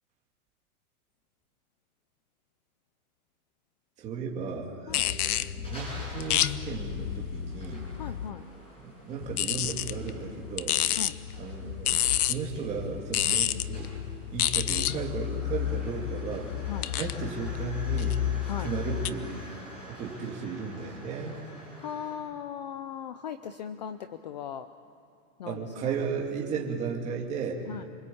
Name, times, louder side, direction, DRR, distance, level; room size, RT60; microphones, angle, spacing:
voice 1, 4.0-7.8 8.8-10.8 11.4-13.9 14.3-16.5 17.0-18.2 18.6-19.5 19.9-21.4 25.4-27.6, right 5 dB, 15° right, 0 dB, 2.5 m, -35 dB
sound 1, 4.9-8.4 9.2-19.1, left 11 dB, 80° left, 1.0 m, -30 dB
sound 2, 5.2-22.2, right 1 dB, 10° left, 7.6 m, -48 dB
voice 2, 7.9-8.5 10.9-11.2 16.6-16.9 18.4-18.8 21.8-24.7 25.4-25.9 26.6-26.7 27.7-27.8, left 8 dB, 30° left, 10 dB, 0.5 m, -38 dB
27.5 x 23.5 x 8.6 m, 2.5 s
supercardioid pair, 180°, 44 cm